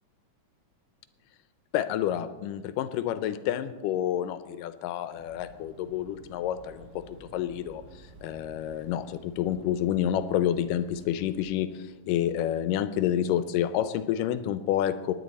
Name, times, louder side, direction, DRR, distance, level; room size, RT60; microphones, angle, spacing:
voice 1, 1.7-15.1, left 11 dB, 90° left, 12 dB, 2.3 m, -29 dB
sound 1, 5.1-11.4, right 1 dB, 75° right, 3.7 m, -52 dB
19.0 x 10.5 x 4.1 m, 1.2 s
omnidirectional pair, 3.7 m